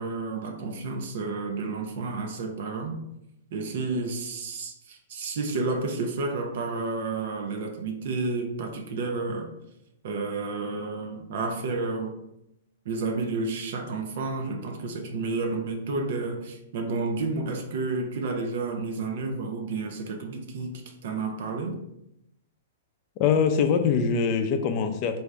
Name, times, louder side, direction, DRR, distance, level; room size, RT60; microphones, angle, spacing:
voice 1, 0.0-3.0 3.5-9.5 10.0-12.1 12.9-21.8, right 3 dB, 65° right, 2 dB, 0.6 m, -31 dB
voice 2, 23.2-25.2, left 6 dB, 40° left, 7 dB, 0.5 m, -23 dB
3.4 x 2.6 x 3.2 m, 0.84 s
hypercardioid pair, 125°, 0 cm